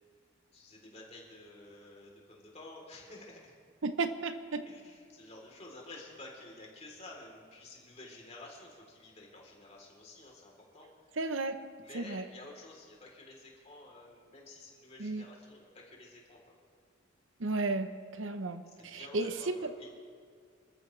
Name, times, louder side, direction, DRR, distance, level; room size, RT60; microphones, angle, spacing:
voice 1, 0.5-3.5 4.7-11.1 11.8-16.5 18.8-19.9, left 2 dB, 30° left, -2 dB, 3.6 m, -51 dB
voice 2, 3.8-4.6 11.2-11.6 11.9-12.2 15.0-15.2 17.4-17.9 18.2-19.7, right 3 dB, 75° right, 9 dB, 0.9 m, -33 dB
27.0 x 14.0 x 3.3 m, 2.1 s
head